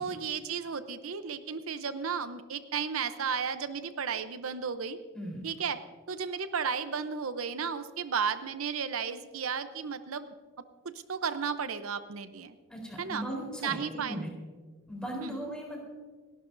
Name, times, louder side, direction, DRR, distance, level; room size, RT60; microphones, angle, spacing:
voice 1, 0.0-5.0 5.4-5.8 6.1-10.4 11.1-12.5 13.0-13.2 13.6-14.3 15.2-15.5, right 6 dB, 85° right, 11 dB, 0.7 m, -34 dB
voice 2, 12.7-13.8 14.1-14.3 14.9-15.8, right 1 dB, 5° left, -1 dB, 3.9 m, -37 dB
29.0 x 11.5 x 2.6 m, 1.5 s
head